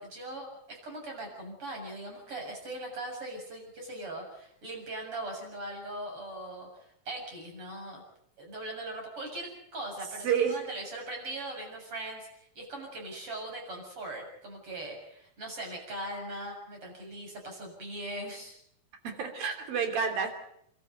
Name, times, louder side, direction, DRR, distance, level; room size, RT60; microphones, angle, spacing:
voice 1, 0.0-8.0 8.4-18.6, right 1 dB, 35° right, 1 dB, 8.0 m, -40 dB
voice 2, 10.2-10.6 19.0-20.3, right 7 dB, 75° right, 5 dB, 4.8 m, -29 dB
29.5 x 13.0 x 9.4 m, 0.72 s
omnidirectional pair, 4.1 m